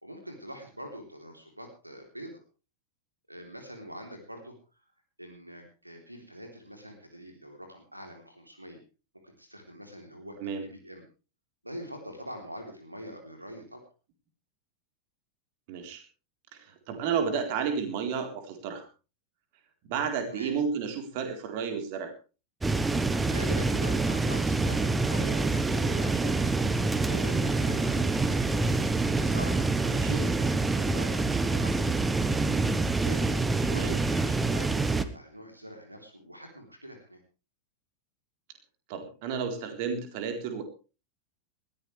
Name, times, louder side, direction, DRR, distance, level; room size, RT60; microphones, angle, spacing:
voice 1, 0.0-2.4 3.3-4.6 5.2-8.8 9.2-10.4 10.7-11.0 11.6-13.8 20.3-20.5 22.9-26.8 27.1-28.4 29.2-31.9 33.0-37.2, equal, 85° right, 4 dB, 3.5 m, -44 dB
voice 2, 15.7-16.0 16.5-18.8 19.8-22.1 29.9-30.3 33.7-34.0 38.9-40.6, right 6 dB, 45° right, 5 dB, 3.9 m, -32 dB
sound 1, 22.6-35.0, right 3 dB, 10° right, 1.2 m, -26 dB
20.5 x 15.5 x 3.4 m, 0.34 s
figure-of-eight pair, 90°, 0 cm